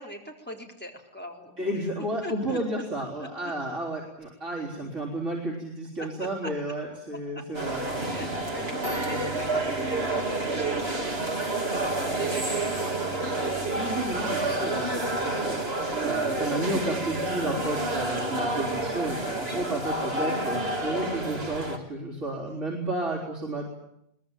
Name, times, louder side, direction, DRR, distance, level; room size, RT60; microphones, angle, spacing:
voice 1, 0.0-2.8 3.2-3.5 6.0-6.5 7.3-7.4 8.0-15.1 18.7-19.0, equal, 10° left, 1 dB, 4.1 m, -42 dB
voice 2, 1.6-7.8 13.7-23.7, right 1 dB, 85° right, -3 dB, 4.6 m, -32 dB
sound 1, 7.5-21.8, right 2 dB, 55° right, 3.1 m, -29 dB
22.5 x 20.0 x 9.2 m, 0.77 s
omnidirectional pair, 1.2 m